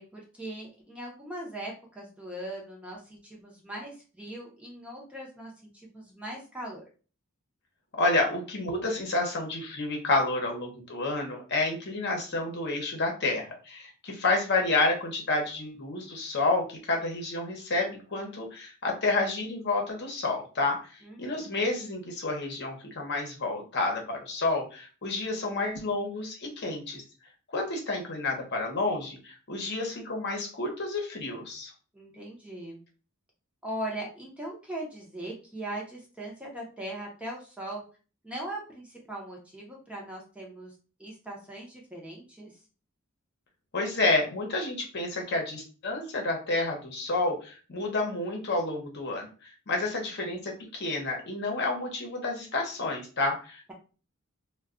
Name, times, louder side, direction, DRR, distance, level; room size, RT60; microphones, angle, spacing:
voice 1, 0.0-6.8 21.0-21.6 31.9-32.8 33.6-37.8 38.2-40.7 41.0-42.6, right 1 dB, 5° right, -2 dB, 0.7 m, -40 dB
voice 2, 8.0-27.0 27.5-31.7 43.7-49.3 49.7-53.7, left 2 dB, 50° left, 1 dB, 0.8 m, -30 dB
2.2 x 2.2 x 3.6 m, 0.36 s
head